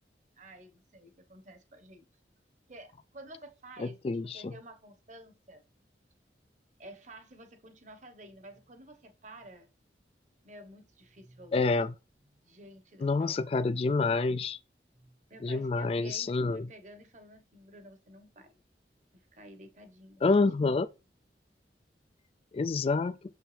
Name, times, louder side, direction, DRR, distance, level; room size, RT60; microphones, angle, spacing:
voice 1, 0.4-2.0 2.7-5.6 6.8-9.7 10.4-11.7 12.3-13.4 14.9-18.6 19.3-20.2 20.6-20.7, right 1 dB, 45° right, 1.2 m, -51 dB
voice 2, 3.8-4.5 11.5-11.9 13.0-14.6 15.4-16.7 20.2-20.9 22.5-23.2, left 3 dB, 35° left, 0.3 m, -27 dB
7.1 x 5.6 x 3.4 m
head